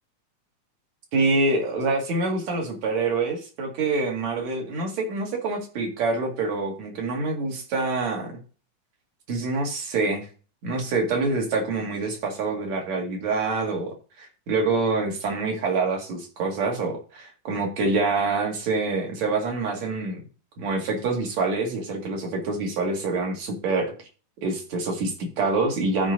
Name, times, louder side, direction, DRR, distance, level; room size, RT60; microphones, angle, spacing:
voice 1, 1.1-8.3 9.3-10.3 10.6-20.2 20.6-23.9 24.4-26.1, right 3 dB, 60° right, 1 dB, 3.4 m, -26 dB
13.5 x 5.3 x 4.0 m, 0.38 s
omnidirectional pair, 3.6 m